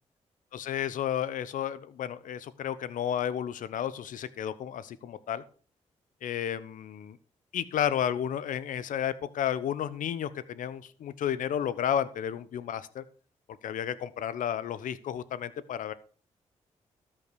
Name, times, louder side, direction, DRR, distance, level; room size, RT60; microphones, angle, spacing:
voice 1, 0.5-5.4 6.2-7.2 7.5-13.0 13.5-15.9, left 9 dB, 75° left, 16 dB, 0.9 m, -32 dB
13.0 x 5.7 x 6.3 m, 0.41 s
supercardioid pair, 55°, 14 cm